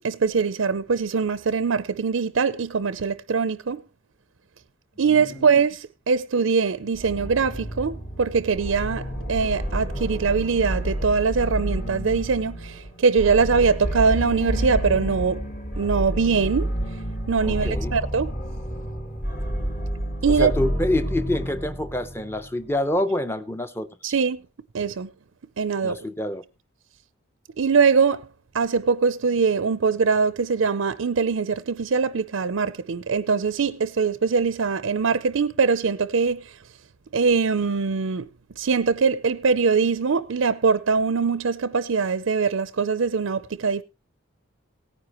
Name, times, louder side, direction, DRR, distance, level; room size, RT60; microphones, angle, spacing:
voice 1, 0.0-3.8 5.0-15.4 15.8-16.7 17.3-18.3 20.2-20.5 24.0-24.4 24.7-25.1 25.6-26.0 27.6-28.3 28.5-36.6 37.1-38.3 38.6-43.8, right 5 dB, 70° right, 0.5 m, -22 dB
voice 2, 5.1-5.4 17.5-17.9 20.3-23.9 25.8-26.4, left 1 dB, 10° left, 0.7 m, -27 dB
sound 1, 6.9-22.6, equal, 40° left, 2.1 m, -29 dB
17.5 x 9.8 x 3.0 m
head